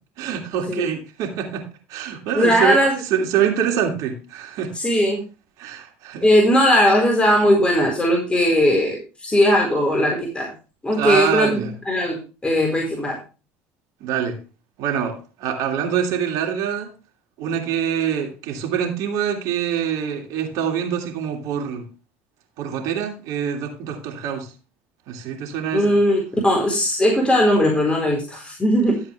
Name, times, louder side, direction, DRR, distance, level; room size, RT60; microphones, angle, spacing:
voice 1, 0.2-1.6 1.9-2.8 3.1-4.7 5.6-6.3 10.9-11.7 14.0-14.4 14.8-16.9 17.4-21.9 22.6-24.5 25.1-25.9, right 8 dB, 65° right, 2.8 m, -25 dB
voice 2, 2.3-2.9 4.7-5.2 6.2-10.5 10.8-13.2 25.7-29.0, equal, 15° left, 4.6 m, -18 dB
13.5 x 7.9 x 3.4 m
hypercardioid pair, 70°, 6 cm